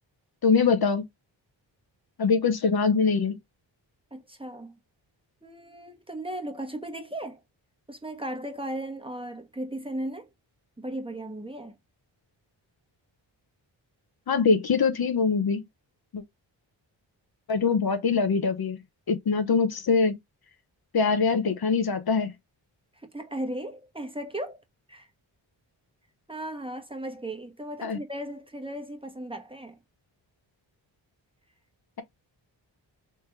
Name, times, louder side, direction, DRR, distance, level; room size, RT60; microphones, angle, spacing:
voice 1, 0.4-1.0 2.2-3.4 14.3-15.6 16.1-16.2 17.5-18.8 19.1-20.1 20.9-22.3 27.8-28.0, left 5 dB, 50° left, 0.9 m, -23 dB
voice 2, 4.1-4.8 5.4-7.4 7.9-10.3 10.8-11.7 23.1-24.6 24.9-25.1 26.3-29.8, right 1 dB, 10° right, 1.1 m, -36 dB
3.3 x 3.1 x 3.3 m
cardioid pair, 60°, 46 cm